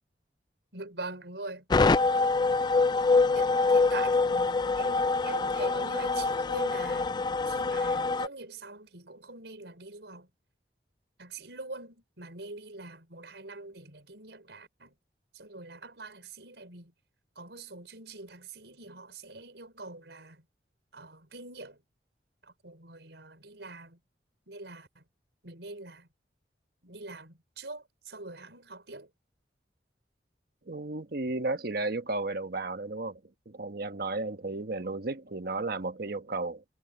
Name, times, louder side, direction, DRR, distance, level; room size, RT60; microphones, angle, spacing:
voice 1, 0.7-2.0 3.3-7.1 7.5-10.3 11.2-15.0 15.3-16.9 17.4-20.4 20.9-21.8 22.4-24.0 24.5-25.0 25.4-26.1 26.8-29.1, right 2 dB, 80° right, 5.7 m, -44 dB
sound 1, 1.7-8.3, left 3 dB, 25° left, 0.4 m, -25 dB
voice 2, 30.7-33.2 33.5-36.6, right 2 dB, 60° right, 1.3 m, -33 dB
head